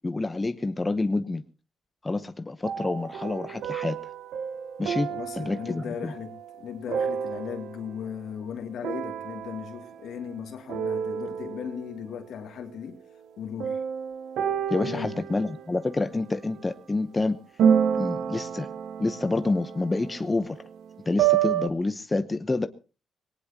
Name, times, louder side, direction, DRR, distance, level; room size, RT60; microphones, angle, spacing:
voice 1, 0.0-1.4 2.0-4.0 4.8-6.1 14.7-17.4 17.9-18.7 19.0-20.6 21.1-22.7, left 2 dB, 20° left, 0.9 m, -28 dB
sound 1, 2.6-8.1 8.8-10.4 10.7-12.0 13.6-16.7 17.6-21.7, right 8 dB, 80° right, 1.1 m, -29 dB
voice 2, 5.1-13.0 13.4-13.8 14.8-15.2, left 8 dB, 70° left, 2.5 m, -37 dB
20.5 x 18.5 x 2.9 m
cardioid pair, 90°, 0 cm